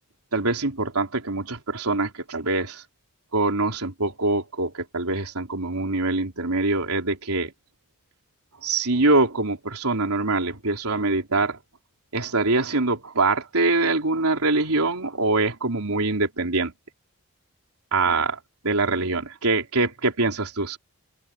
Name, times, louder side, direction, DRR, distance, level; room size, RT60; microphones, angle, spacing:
voice 1, 0.3-2.8 3.3-7.5 8.6-11.6 12.1-16.7 17.9-18.4 18.6-20.8, right 3 dB, 85° right, 3.8 m, -24 dB
open air
head